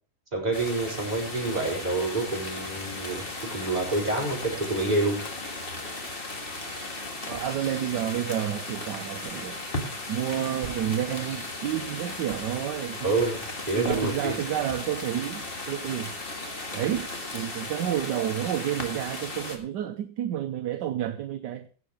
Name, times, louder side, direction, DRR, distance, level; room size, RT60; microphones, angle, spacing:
voice 1, 0.3-5.2 13.0-14.4, right 2 dB, 20° right, 4.7 m, -28 dB
sound 1, 0.5-19.6, left 2 dB, 30° left, 1.8 m, -36 dB
voice 2, 7.2-9.6 10.1-13.1 13.7-16.1 16.7-21.7, right 11 dB, 65° right, 1.2 m, -30 dB
sound 2, 10.6-11.0 12.3-12.6 13.9-14.2, right 6 dB, 45° right, 0.7 m, -42 dB
16.0 x 7.6 x 4.9 m
omnidirectional pair, 2.2 m